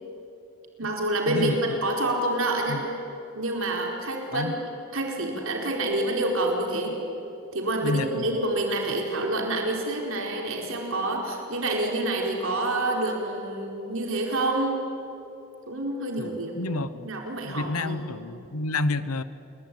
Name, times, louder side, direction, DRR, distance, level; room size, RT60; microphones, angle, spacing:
voice 1, 0.8-2.8 3.3-4.6 4.9-6.9 7.5-14.8 15.7-16.5 17.0-18.2, right 1 dB, 70° right, 1 dB, 4.4 m, -27 dB
voice 2, 7.8-8.3 16.2-16.9 17.4-19.2, left 2 dB, 90° left, 14 dB, 1.1 m, -29 dB
28.0 x 22.0 x 9.2 m, 2.9 s
head